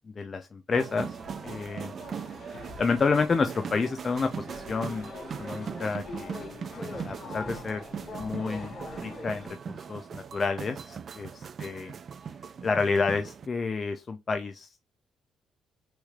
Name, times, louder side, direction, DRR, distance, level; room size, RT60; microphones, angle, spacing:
voice 1, 0.2-1.2 1.4-1.9 2.8-5.1 5.4-6.4 6.8-7.8 8.2-8.8 9.0-11.9 12.6-14.7, left 4 dB, 40° left, 0.5 m, -29 dB
sound 1, 0.7-13.5, right 6 dB, 50° right, 0.4 m, -40 dB
sound 2, 1.1-9.5, left 3 dB, 60° left, 3.2 m, -44 dB
6.1 x 3.3 x 2.4 m
cardioid pair, 90°, 0 cm